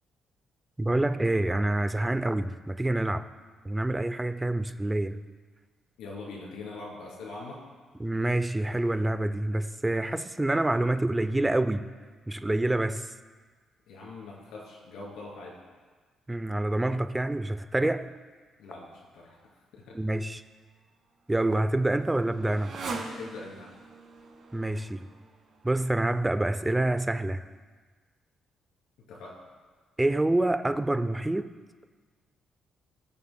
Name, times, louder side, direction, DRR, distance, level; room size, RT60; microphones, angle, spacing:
voice 1, 0.8-3.2 3.6-5.2 8.0-11.9 12.3-13.1 16.3-18.1 19.9-20.4 21.3-22.8 24.5-25.1 25.6-27.4 30.0-31.5, right 1 dB, 15° right, 12 dB, 0.5 m, -27 dB
voice 2, 6.0-7.6 13.9-15.6 18.6-19.4 19.7-20.0 23.2-23.7 29.1-29.4, left 3 dB, 90° left, -3 dB, 2.8 m, -42 dB
Motorcycle, 20.7-26.1, right 3 dB, 60° right, 1.5 m, -43 dB
19.0 x 7.0 x 2.2 m, 1.4 s
cardioid pair, 90°, 0 cm